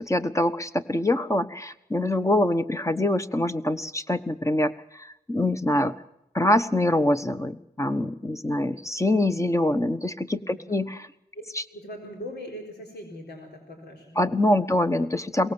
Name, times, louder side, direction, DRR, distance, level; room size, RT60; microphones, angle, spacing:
voice 1, 0.0-5.9 6.3-11.1 14.2-15.5, left 1 dB, 20° left, 10 dB, 1.2 m, -24 dB
voice 2, 10.5-10.9 11.7-14.7, equal, 85° left, 1 dB, 4.0 m, -41 dB
22.5 x 18.5 x 7.0 m, 0.82 s
cardioid pair, 70°, 17 cm